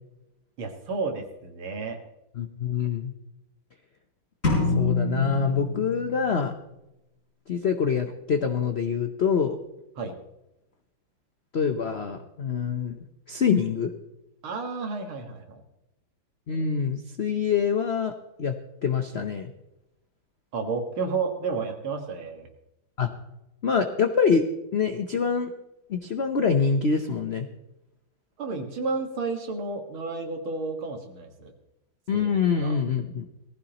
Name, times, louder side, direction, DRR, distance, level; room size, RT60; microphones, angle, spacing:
voice 1, 0.6-2.0 10.0-10.2 14.4-15.6 20.5-22.5 28.4-31.5 32.1-32.7, right 4 dB, 80° right, 4 dB, 2.5 m, -31 dB
voice 2, 2.4-3.1 4.8-6.5 7.5-9.6 11.5-13.0 13.3-13.9 16.5-18.1 18.4-18.5 18.8-19.5 23.0-23.1 23.6-24.4 24.7-25.5 25.9-27.5 32.1-33.3, left 6 dB, 75° left, 7 dB, 0.6 m, -25 dB
sound 1, 4.4-6.3, left 3 dB, 35° left, 5.1 m, -26 dB
18.5 x 15.0 x 2.9 m, 0.90 s
omnidirectional pair, 2.3 m